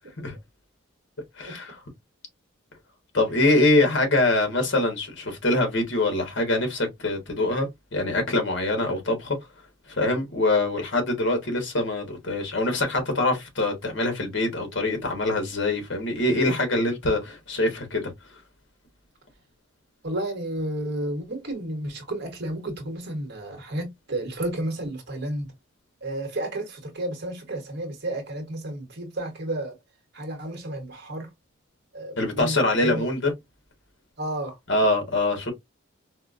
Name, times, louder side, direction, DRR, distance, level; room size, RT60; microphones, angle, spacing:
voice 1, 1.4-1.8 3.1-9.4 9.9-18.1 32.2-33.3 34.7-35.5, left 2 dB, 60° left, 1.3 m, -24 dB
voice 2, 20.0-25.5 26.0-29.8 30.1-31.3 31.9-33.1 34.2-34.6, right 1 dB, 55° right, 1.0 m, -32 dB
4.3 x 2.1 x 2.5 m
head